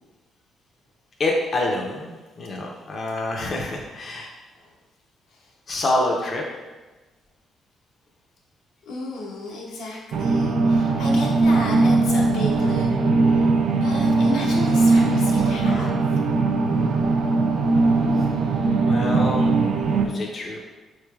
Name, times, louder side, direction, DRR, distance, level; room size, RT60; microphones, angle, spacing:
voice 1, 1.2-4.3 5.7-6.4 18.9-19.5 20.0-20.6, left 2 dB, 45° left, -1 dB, 0.5 m, -26 dB
voice 2, 8.9-12.9 13.2-16.1, left 3 dB, 90° left, -2 dB, 0.7 m, -33 dB
sound 1, 10.1-20.1, right 3 dB, 75° right, 0.3 m, -20 dB
4.1 x 3.2 x 2.3 m, 1.2 s
cardioid pair, 90°, 0 cm